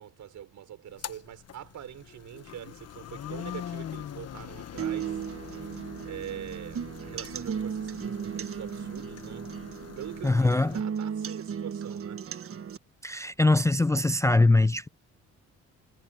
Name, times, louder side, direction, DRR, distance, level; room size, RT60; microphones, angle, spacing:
voice 1, 0.0-9.5 10.0-12.2, right 10 dB, 70° right, 6.3 m, -44 dB
computer boot up, 0.9-10.8, left 9 dB, 55° left, 1.4 m, -43 dB
sound 1, 4.8-12.8, right 7 dB, 45° right, 1.4 m, -35 dB
voice 2, 10.2-10.8 13.0-14.9, left 2 dB, 10° left, 0.4 m, -22 dB
cardioid pair, 90°, 30 cm